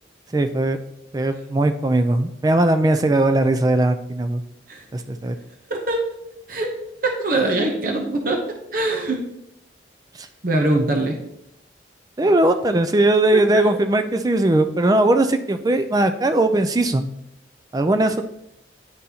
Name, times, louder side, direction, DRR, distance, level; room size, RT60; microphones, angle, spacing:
voice 1, 0.3-0.8 1.1-4.4 4.9-5.3 10.2-10.3 12.2-17.1 17.7-18.2, right 1 dB, 20° right, 9 dB, 0.4 m, -19 dB
voice 2, 5.7-6.0 6.5-6.7 7.0-8.4 8.7-9.2 10.4-11.2 13.3-13.8, right 2 dB, 50° right, 2 dB, 0.8 m, -22 dB
9.5 x 3.9 x 2.8 m, 0.79 s
head